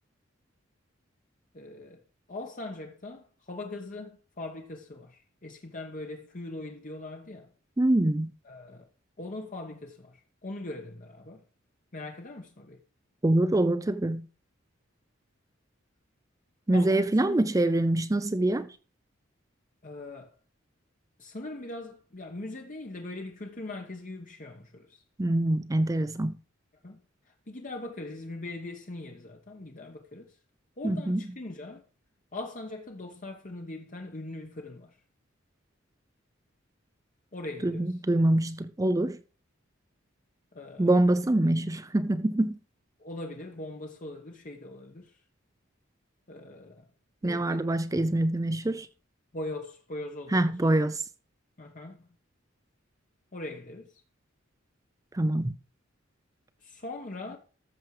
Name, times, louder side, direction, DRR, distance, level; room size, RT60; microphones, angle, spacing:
voice 1, 1.5-2.0 2.3-7.5 8.4-8.9 9.2-11.4 11.9-12.8 16.7-17.4 19.8-20.3 21.2-25.0 26.8-27.0 27.2-30.4 30.8-31.8 32.3-35.0 37.3-38.0 40.5-40.9 43.0-45.2 46.3-46.9 47.2-47.7 49.3-50.6 51.6-52.1 53.3-54.0 56.6-57.4, left 2 dB, 40° left, 1.1 m, -41 dB
voice 2, 7.8-8.3 13.2-14.3 16.7-18.7 25.2-26.4 30.8-31.2 37.6-39.2 40.8-42.6 47.2-48.9 50.3-51.0 55.1-55.6, right 1 dB, 15° right, 0.5 m, -25 dB
14.0 x 6.4 x 4.8 m
head